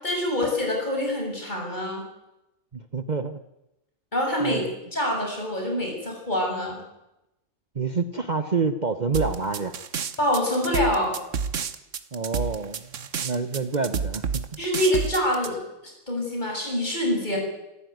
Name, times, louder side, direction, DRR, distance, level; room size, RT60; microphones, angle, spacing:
voice 1, 0.0-2.0 4.1-4.6 4.9-6.8 10.2-11.2 14.6-15.6 15.8-17.4, left 1 dB, 35° left, 0 dB, 7.4 m, -25 dB
voice 2, 2.7-3.4 4.4-4.7 7.7-9.7 12.1-14.4, right 4 dB, 35° right, 9 dB, 1.1 m, -28 dB
sound 1, 9.1-15.5, right 6 dB, 70° right, 1.5 m, -29 dB
28.0 x 14.5 x 9.4 m, 0.91 s
omnidirectional pair, 1.3 m